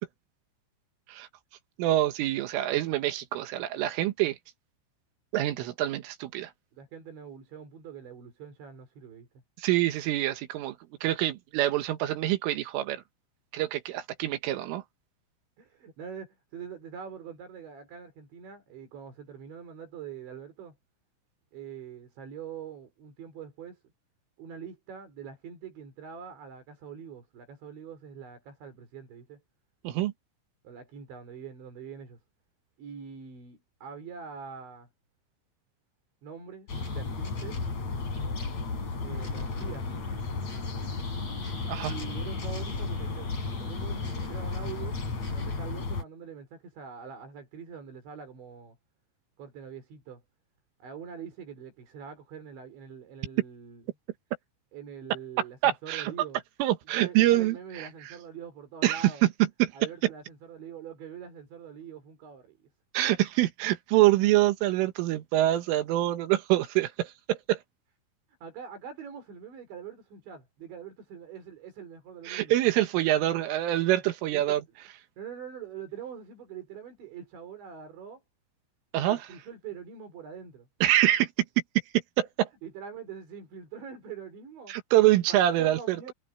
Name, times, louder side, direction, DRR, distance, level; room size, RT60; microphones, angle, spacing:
voice 1, 1.8-4.4 5.3-6.5 9.6-10.8 11.0-13.0 13.5-14.8 29.8-30.1 41.7-41.9 55.6-56.1 56.6-57.9 58.8-59.3 59.6-59.7 60.0-60.1 62.9-67.6 72.3-74.6 78.9-79.2 80.8-81.3 82.2-82.5 84.7-86.1, right 14 dB, 80° right, 3.9 m, -25 dB
voice 2, 6.7-9.3 15.6-20.8 21.5-23.8 24.4-29.4 30.6-32.2 32.8-34.9 36.2-37.6 39.0-39.9 41.9-45.0 45.3-48.8 49.4-50.2 50.8-53.8 54.7-56.4 57.0-59.3 59.7-62.6 68.4-72.6 73.9-74.6 75.2-78.2 79.0-80.7 82.6-84.8 85.3-86.1, right 7 dB, 65° right, 7.4 m, -44 dB
sound 1, 36.7-46.0, left 3 dB, 35° left, 6.6 m, -33 dB
omnidirectional pair, 5.8 m